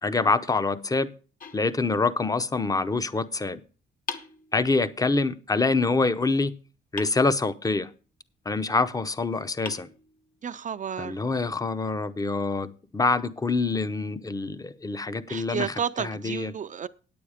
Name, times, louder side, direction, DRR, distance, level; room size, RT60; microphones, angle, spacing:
voice 1, 0.0-1.1 1.5-3.6 4.5-6.5 6.9-7.9 8.5-9.9 11.0-16.5, left 3 dB, 20° left, 0.7 m, -26 dB
sound 1, 1.4-2.4 4.1-5.1 7.0-7.9 9.1-9.2 9.7-10.6, left 4 dB, 45° left, 1.3 m, -42 dB
voice 2, 10.4-11.2 15.3-16.9, right 7 dB, 40° right, 0.5 m, -31 dB
9.1 x 8.7 x 4.9 m
cardioid pair, 90°, 20 cm